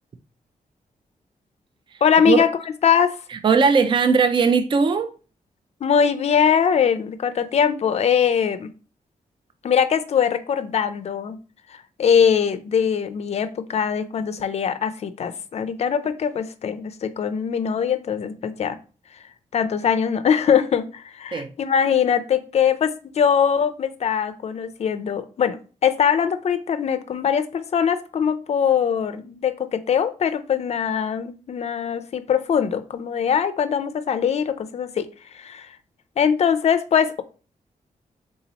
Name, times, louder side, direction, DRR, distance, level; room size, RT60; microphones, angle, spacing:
voice 1, 2.0-2.5 2.8-3.2 5.8-8.7 9.6-11.4 11.7-18.8 19.5-35.1 35.3-35.7 36.2-37.2, left 7 dB, 50° left, 0.4 m, -22 dB
voice 2, 3.3-5.1 21.3-21.5, right 5 dB, 35° right, 0.4 m, -19 dB
3.7 x 2.8 x 4.0 m
wide cardioid pair, 140°, 14 cm